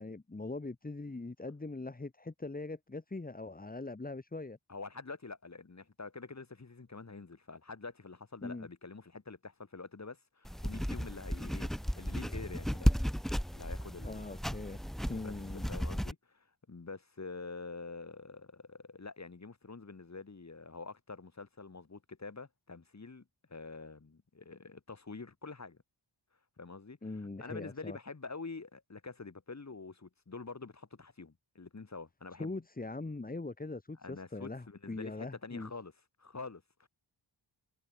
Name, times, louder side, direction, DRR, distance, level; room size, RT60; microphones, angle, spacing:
voice 1, 0.0-4.6 8.4-8.7 14.0-14.8 15.1-15.7 27.0-28.0 32.4-35.7, left 2 dB, 20° left, 1.7 m, -41 dB
voice 2, 4.7-11.7 12.0-13.0 13.5-14.2 15.1-15.3 15.7-23.2 23.5-25.8 26.6-32.6 34.0-35.9 36.2-36.9, left 4 dB, 35° left, 4.0 m, -46 dB
sound 1, 10.4-16.1, equal, ahead, 0.4 m, -34 dB
wide cardioid pair, 165°, 48 cm